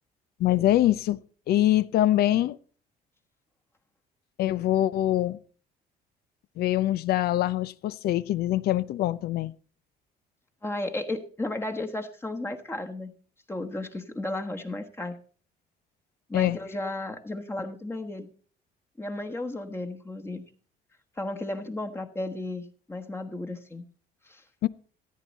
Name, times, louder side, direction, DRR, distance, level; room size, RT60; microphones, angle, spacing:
voice 1, 0.4-1.2 1.5-2.6 4.4-5.4 6.6-9.5 16.3-16.6 24.6-24.7, left 13 dB, 70° left, 0.6 m, -24 dB
voice 2, 10.6-13.1 13.5-15.2 16.3-18.3 19.0-20.4 21.2-23.8 24.2-24.4, left 2 dB, 15° left, 1.3 m, -34 dB
14.0 x 9.3 x 4.1 m
cardioid pair, 110°, 17 cm